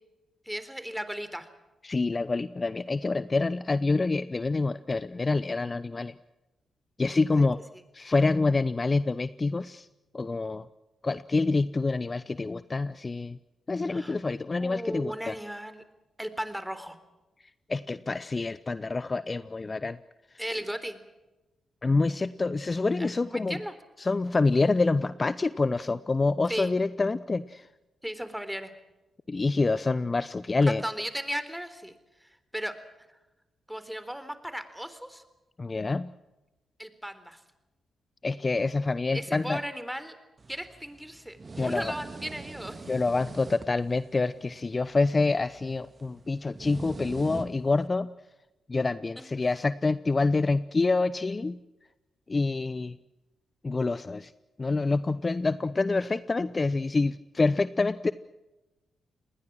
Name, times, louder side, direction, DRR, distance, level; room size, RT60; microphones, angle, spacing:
voice 1, 0.5-1.5 7.4-7.5 13.9-14.2 14.6-15.8 16.2-17.0 20.4-21.0 23.0-23.7 26.5-26.7 28.0-28.7 30.6-31.9 32.2-32.8 33.7-35.2 36.8-37.4 39.1-40.2 40.5-42.9 49.2-49.3, equal, 5° right, 11 dB, 3.8 m, -36 dB
voice 2, 1.8-6.1 7.0-7.6 7.9-9.9 10.1-10.7 11.0-13.4 13.7-15.4 17.7-20.0 21.8-23.6 24.0-27.7 29.3-30.8 35.6-36.1 38.2-39.6 41.6-41.9 42.9-48.1 48.7-51.6 52.3-53.0 53.6-54.3 54.6-58.1, left 3 dB, 35° left, 16 dB, 0.8 m, -27 dB
sound 1, 40.4-47.9, right 3 dB, 40° right, 2.1 m, -44 dB
28.5 x 20.5 x 6.3 m, 1.0 s
hypercardioid pair, 40°, 0 cm